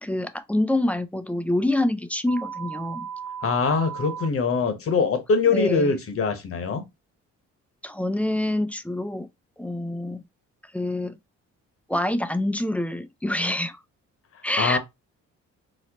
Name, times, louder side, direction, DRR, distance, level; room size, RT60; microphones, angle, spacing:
voice 1, 0.0-3.1 5.5-5.9 7.8-9.3 9.6-10.2 10.7-11.2 11.9-13.8 14.4-14.8, left 1 dB, 5° left, 0.3 m, -26 dB
sound 1, 2.3-4.3, right 7 dB, 60° right, 0.6 m, -35 dB
voice 2, 3.4-6.8 14.6-14.8, left 4 dB, 50° left, 1.0 m, -23 dB
4.2 x 2.1 x 2.8 m
cardioid pair, 90°, 30 cm